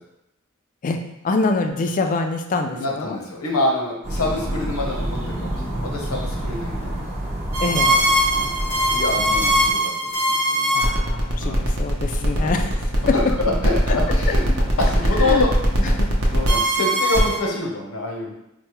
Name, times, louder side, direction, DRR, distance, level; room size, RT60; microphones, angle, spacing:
voice 1, 1.2-3.2 7.6-7.9 10.7-12.8 15.2-15.4 15.9-16.1, left 3 dB, 40° left, 5 dB, 0.3 m, -25 dB
voice 2, 2.7-7.1 7.7-8.5 8.9-10.7 11.4-11.6 12.3-12.7 13.1-14.5 14.8-15.5 16.3-18.3, left 2 dB, 85° left, 0 dB, 0.8 m, -26 dB
sound 1, 4.0-9.7, right 1 dB, 30° right, 0.7 m, -28 dB
sound 2, 7.5-17.4, right 1 dB, 85° right, 0.7 m, -21 dB
4.5 x 2.1 x 2.9 m, 0.86 s
head